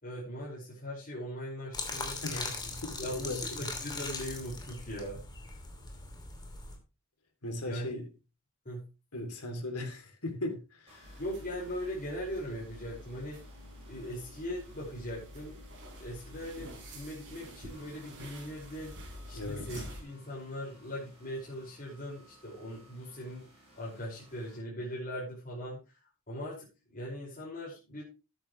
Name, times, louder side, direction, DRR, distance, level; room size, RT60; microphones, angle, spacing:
voice 1, 0.0-2.5 3.0-5.2 7.6-7.9 8.7-8.9 11.2-13.4 13.9-15.6 16.0-23.5 23.8-26.0 26.3-28.0, equal, 40° left, 5.5 m, -40 dB
sound 1, 1.7-6.8, left 3 dB, 20° left, 2.6 m, -40 dB
voice 2, 2.2-3.6 7.4-8.1 9.1-11.2 19.3-19.8, left 2 dB, 90° left, 3.1 m, -38 dB
sound 2, 10.9-24.6, right 1 dB, 25° right, 7.2 m, -60 dB
sound 3, 11.0-20.0, equal, 55° right, 5.3 m, -48 dB
13.0 x 10.5 x 3.2 m
head